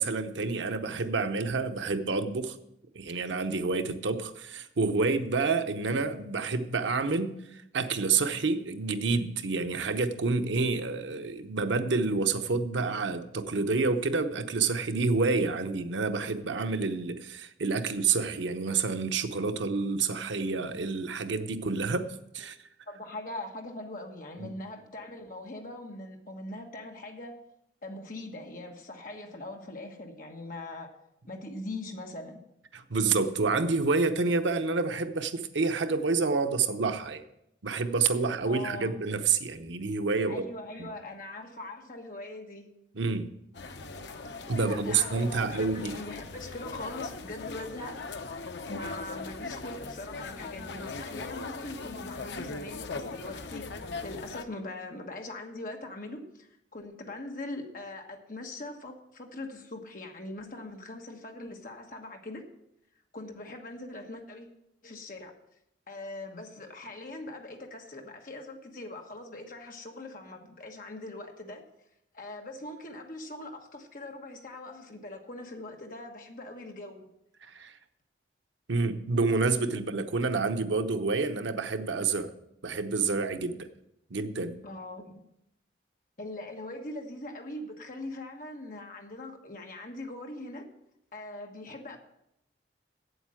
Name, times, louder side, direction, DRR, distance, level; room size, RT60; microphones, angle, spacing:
voice 1, 0.0-2.6 2.9-22.6 24.4-24.5 32.7-37.2 37.6-40.5 40.8-40.9 42.9-43.3 44.5-46.0 77.4-77.7 78.7-82.3 82.6-83.7 84.1-84.6, right 4 dB, 85° right, 0.8 m, -28 dB
voice 2, 22.9-27.4 27.8-30.9 31.3-32.4 38.4-38.9 40.3-42.7 44.6-48.0 48.7-53.7 54.0-62.5 63.1-64.5 64.8-65.3 65.9-71.6 72.1-77.1 84.6-85.2 86.2-90.7 91.1-92.0, left 2 dB, 45° left, 1.4 m, -41 dB
sound 1, 43.5-54.4, left 3 dB, 75° left, 0.7 m, -40 dB
8.3 x 7.9 x 7.7 m
head